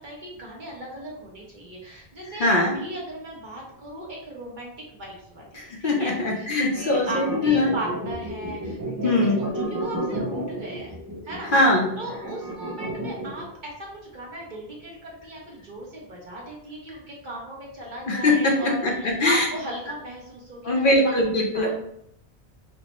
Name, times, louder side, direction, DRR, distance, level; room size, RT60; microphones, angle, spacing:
voice 1, 0.0-9.1 9.4-10.9 11.2-11.5 12.0-21.2 21.5-21.7, right 1 dB, 50° right, -3 dB, 1.1 m, -37 dB
voice 2, 2.3-2.8 5.5-7.7 9.0-9.4 11.4-11.9 18.1-19.5 20.6-21.7, left 2 dB, 60° left, -1 dB, 0.8 m, -21 dB
sound 1, 6.7-13.5, right 1 dB, 30° right, 0.4 m, -31 dB
4.4 x 2.1 x 2.9 m, 0.73 s
omnidirectional pair, 1.1 m